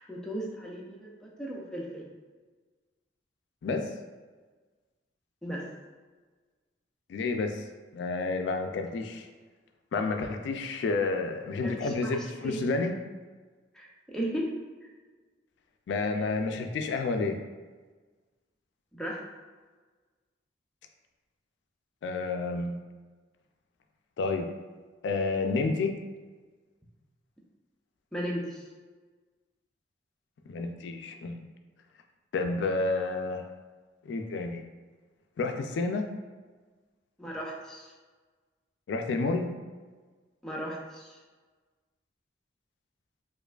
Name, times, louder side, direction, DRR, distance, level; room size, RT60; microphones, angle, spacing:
voice 1, 0.0-2.1 5.4-5.7 11.6-12.6 13.7-14.5 14.8-14.9 18.9-19.2 28.1-28.7 37.2-37.9 40.4-41.2, equal, 5° left, -4 dB, 0.4 m, -36 dB
voice 2, 7.1-7.6 7.9-9.2 9.9-12.9 15.9-17.4 22.0-22.8 24.2-24.5 25.0-25.9 30.5-31.4 32.3-33.4 34.0-34.6 35.4-36.1 38.9-39.5, left 3 dB, 75° left, 5 dB, 0.3 m, -30 dB
4.5 x 2.4 x 2.3 m, 1.4 s
head